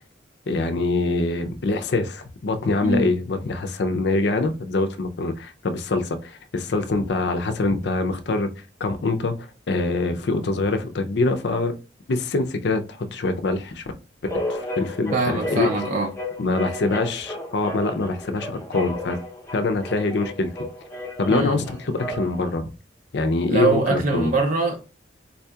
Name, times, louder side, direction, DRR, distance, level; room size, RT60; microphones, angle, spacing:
voice 1, 0.5-8.5 8.8-11.7 12.1-13.8 14.3-15.7 16.4-19.2 19.5-20.5 21.2-22.7 23.1-24.3, left 3 dB, 60° left, 0.5 m, -24 dB
sound 1, 14.3-22.5, left 1 dB, 15° left, 0.6 m, -33 dB
voice 2, 15.1-16.1 21.3-21.6 23.5-24.8, right 3 dB, 40° right, 0.5 m, -23 dB
3.9 x 2.7 x 2.3 m
head